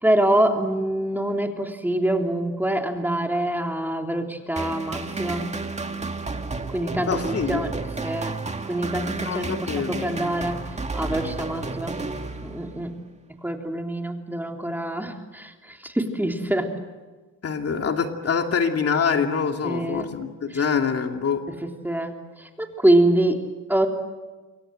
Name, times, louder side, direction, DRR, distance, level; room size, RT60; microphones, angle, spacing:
voice 1, 0.0-5.4 6.7-7.2 7.5-7.7 8.0-8.3 8.7-10.6 10.9-11.9 12.4-12.9 13.4-16.7 19.6-20.1 21.5-23.4 23.7-23.9, right 1 dB, 5° right, 3 dB, 3.4 m, -25 dB
sound 1, 4.6-12.9, right 3 dB, 20° right, 2.1 m, -31 dB
voice 2, 7.1-7.7 9.2-10.1 17.4-21.4, left 6 dB, 50° left, 4 dB, 2.6 m, -25 dB
27.5 x 24.0 x 7.7 m, 1.3 s
cardioid pair, 90°, 30 cm